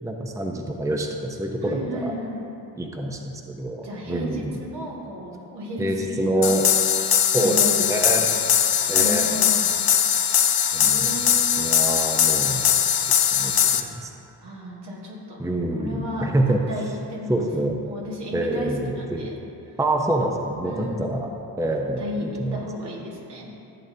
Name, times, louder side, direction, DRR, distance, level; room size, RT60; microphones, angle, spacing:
voice 1, 0.0-2.1 2.8-4.6 5.8-6.6 7.2-8.3 8.9-9.2 10.7-12.7 13.3-14.1 15.4-16.6 17.3-17.8 18.3-19.3 19.8-21.3 21.6-22.6, right 1 dB, 5° right, 1 dB, 0.8 m, -26 dB
voice 2, 1.6-2.4 3.8-6.5 7.3-8.2 8.7-9.6 10.8-11.8 14.4-15.5 15.8-16.3 16.7-17.5 17.8-19.4 20.6-21.2 22.0-23.5, left 1 dB, 70° right, -3 dB, 1.9 m, -34 dB
sound 1, 6.4-13.8, left 9 dB, 55° left, 0.6 m, -20 dB
14.5 x 7.5 x 2.8 m, 2.7 s
cardioid pair, 80°, 43 cm